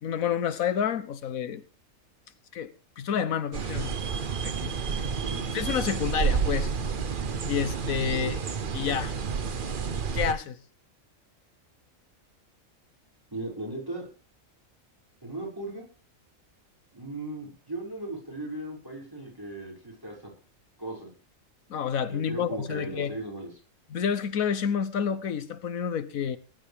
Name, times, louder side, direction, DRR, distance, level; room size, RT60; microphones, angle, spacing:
voice 1, 0.0-1.6 2.5-4.0 4.4-4.7 5.5-6.7 7.5-8.4 8.7-9.1 10.1-10.6 21.7-23.2 23.9-26.4, left 8 dB, 80° left, 13 dB, 1.3 m, -29 dB
sound 1, 3.5-10.3, right 6 dB, 45° right, 1.0 m, -30 dB
voice 2, 13.3-14.1 15.2-15.9 16.9-20.3 20.8-21.1 22.1-23.5, right 2 dB, 15° right, -1 dB, 6.1 m, -37 dB
20.0 x 11.5 x 3.5 m, 0.34 s
omnidirectional pair, 1.4 m